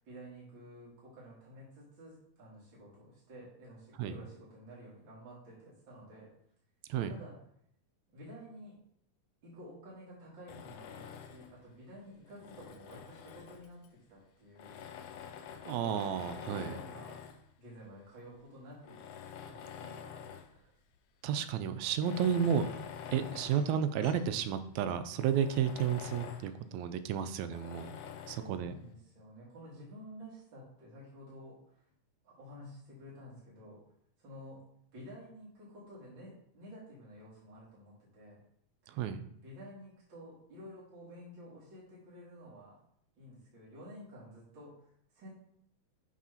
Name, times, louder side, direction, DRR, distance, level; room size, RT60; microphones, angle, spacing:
voice 1, 0.0-6.3 7.1-7.4 8.1-8.8 9.4-14.8 15.7-17.2 17.6-19.0 19.4-20.2 23.1-23.4 28.2-31.6 32.2-33.8 34.2-34.6 34.9-38.4 39.4-42.8 43.2-45.3, equal, 45° right, -8 dB, 2.6 m, -51 dB
Tools, 10.5-11.6 12.2-13.9 14.6-17.5 18.2-18.3 18.8-20.6 20.9-21.0 21.9-24.4 24.7-24.8 25.2-26.5 27.5-28.5, left 8 dB, 90° left, 1.3 m, -47 dB
voice 2, 15.7-16.8 21.2-22.7 23.1-28.0 28.3-28.7 38.9-39.2, right 8 dB, 80° right, 10 dB, 1.8 m, -32 dB
7.4 x 3.7 x 5.7 m, 0.68 s
omnidirectional pair, 3.4 m